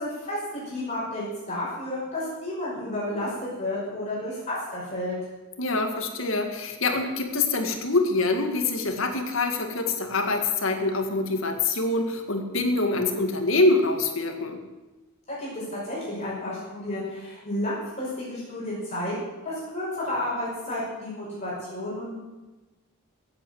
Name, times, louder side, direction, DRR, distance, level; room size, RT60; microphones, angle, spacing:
voice 1, 0.0-3.3 3.6-5.2 15.4-22.2, left 1 dB, 30° left, -7 dB, 6.1 m, -31 dB
voice 2, 5.6-14.6, left 2 dB, 65° left, 5 dB, 2.0 m, -25 dB
16.5 x 8.5 x 8.0 m, 1.2 s
head